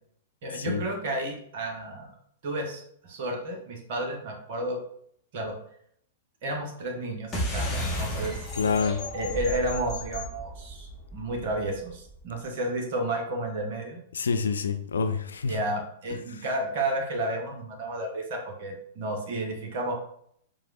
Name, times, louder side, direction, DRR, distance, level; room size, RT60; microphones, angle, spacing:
voice 1, 0.4-2.1 2.4-4.8 5.3-5.6 6.4-8.4 9.1-14.0 15.4-20.0, right 1 dB, 50° right, 2 dB, 0.7 m, -32 dB
sound 1, 7.3-12.2, equal, 20° left, 0.8 m, -33 dB
voice 2, 8.6-9.0 14.1-15.6, left 5 dB, 70° left, 8 dB, 0.3 m, -27 dB
4.5 x 2.0 x 2.4 m, 0.66 s
figure-of-eight pair, 105°, 0 cm